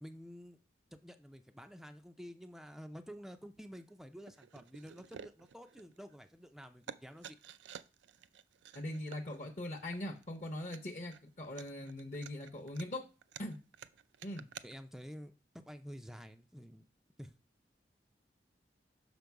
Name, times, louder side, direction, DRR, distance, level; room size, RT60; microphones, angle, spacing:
voice 1, 0.0-0.6 0.9-7.4 14.6-16.9 17.2-17.4, equal, ahead, 8 dB, 0.4 m, -50 dB
sound 1, 3.7-3.9 4.3-6.4 6.6-14.7, right 8 dB, 90° right, 0.4 m, -52 dB
voice 2, 8.7-13.0 13.4-13.6 14.2-14.5, left 1 dB, 45° left, 2 dB, 0.8 m, -41 dB
6.2 x 5.2 x 4.6 m, 0.33 s
head